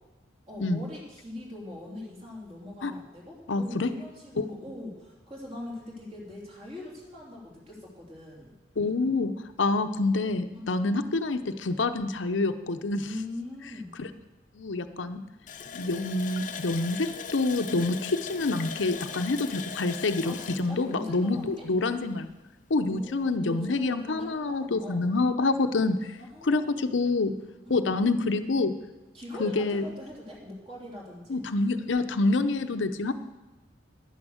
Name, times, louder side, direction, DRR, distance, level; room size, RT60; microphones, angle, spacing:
voice 1, 0.5-8.5 10.5-10.9 13.0-13.9 20.2-21.7 22.7-25.1 26.2-26.9 27.6-28.0 29.1-31.4 33.1-33.2, left 1 dB, 30° right, -3 dB, 3.1 m, -42 dB
voice 2, 3.5-3.9 4.4-4.5 8.8-9.3 9.6-13.1 14.0-14.1 14.6-15.2 15.7-22.3 22.7-26.0 26.4-27.3 27.7-28.7 29.4-29.8 31.3-33.1, left 3 dB, 90° left, 9 dB, 0.7 m, -27 dB
Water tap faucet, 15.5-22.0 22.3-22.4 22.8-23.0, left 6 dB, 45° left, 0.6 m, -39 dB
10.5 x 9.9 x 6.4 m, 1.1 s
head